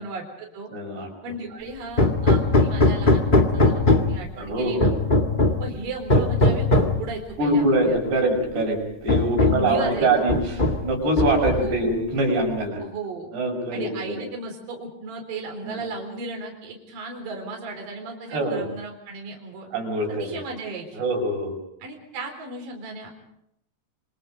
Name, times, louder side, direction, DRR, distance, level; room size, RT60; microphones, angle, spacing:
voice 1, 0.0-0.7 1.2-3.8 4.1-4.9 5.6-8.2 9.4-10.1 11.4-11.9 12.8-13.3 13.7-19.7 20.1-21.0 21.8-23.1, right 3 dB, 60° right, 1 dB, 5.7 m, -35 dB
voice 2, 0.7-1.1 4.3-4.9 7.4-8.8 9.0-12.8 13.3-14.2 15.6-15.8 18.3-18.6 19.7-20.4 20.9-21.6, right 1 dB, 90° right, 2 dB, 8.0 m, -24 dB
Hammer, 2.0-4.3 4.8-5.7 6.1-7.0 8.0-8.1 8.6-8.7 9.1-9.7 10.3-10.9 11.2-11.8, left 2 dB, 45° left, 0.6 m, -20 dB
27.5 x 25.5 x 5.2 m, 0.75 s
omnidirectional pair, 4.6 m